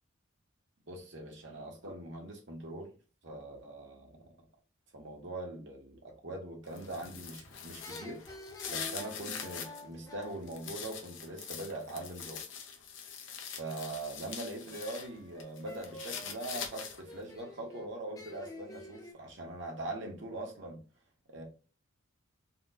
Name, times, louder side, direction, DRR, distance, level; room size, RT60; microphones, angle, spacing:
voice 1, 0.9-2.9 3.2-4.3 4.9-8.2 8.7-12.4 13.5-20.8 21.3-21.4, right 2 dB, 60° right, 1.1 m, -42 dB
sound 1, 6.7-9.8 10.2-15.1 15.4-17.2, left 7 dB, 65° left, 0.7 m, -43 dB
sound 2, 7.0-7.4 7.8-11.5 14.7-19.1, left 1 dB, 15° left, 0.5 m, -50 dB
4.2 x 2.3 x 2.5 m
head